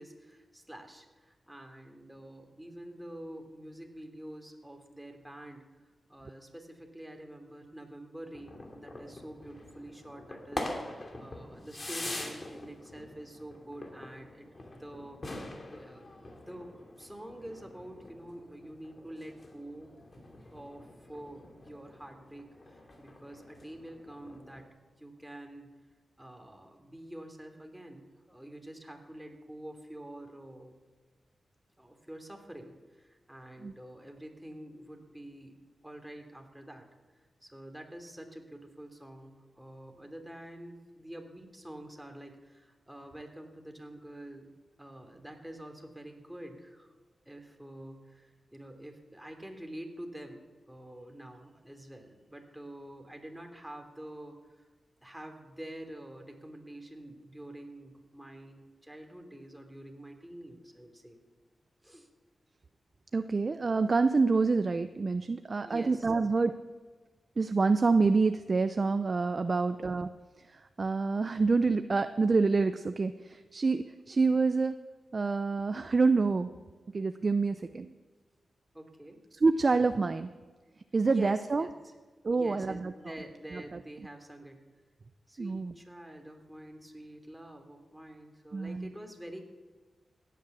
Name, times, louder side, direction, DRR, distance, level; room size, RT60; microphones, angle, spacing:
voice 1, 0.0-5.7 6.1-16.7 17.0-20.0 20.5-25.7 26.2-30.8 31.8-35.5 35.8-36.9 37.4-44.5 44.8-46.9 47.2-54.7 55.0-61.2 61.8-62.1 65.6-66.1 78.7-79.2 81.1-81.9 82.3-84.6 85.3-89.4, right 1 dB, 5° right, 3 dB, 3.0 m, -47 dB
sound 1, 8.3-24.6, left 2 dB, 45° left, 2.8 m, -44 dB
voice 2, 63.1-66.6 67.4-70.1 70.4-74.8 75.1-76.5 76.9-77.9 79.4-80.3 80.9-81.7 82.2-82.9 83.5-83.8 85.4-85.7 88.5-88.9, right 4 dB, 50° right, 10 dB, 0.6 m, -27 dB
16.5 x 9.5 x 7.1 m, 1.3 s
cardioid pair, 50°, 0 cm